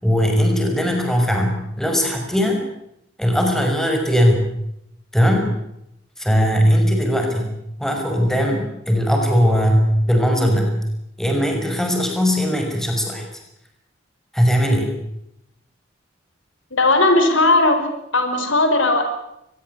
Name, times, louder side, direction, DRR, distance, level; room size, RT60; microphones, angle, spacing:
voice 1, 0.0-2.6 3.2-4.4 5.1-5.5 6.2-7.5 7.8-9.8 10.1-10.7 11.2-13.2 14.3-14.9, equal, ahead, 3 dB, 5.7 m, -19 dB
voice 2, 16.7-17.8 18.1-19.0, left 2 dB, 80° left, 7 dB, 5.2 m, -16 dB
24.0 x 21.0 x 8.3 m, 0.81 s
head